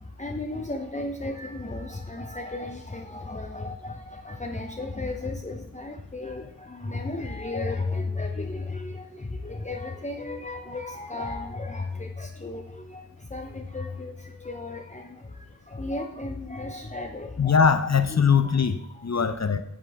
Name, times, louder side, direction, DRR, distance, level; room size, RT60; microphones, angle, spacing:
voice 1, 0.0-17.6 18.1-18.6 19.0-19.1, left 2 dB, 20° left, 0.8 m, -34 dB
voice 2, 17.4-19.6, left 6 dB, 50° left, 0.7 m, -21 dB
8.3 x 7.3 x 3.5 m
wide cardioid pair, 45°, 36 cm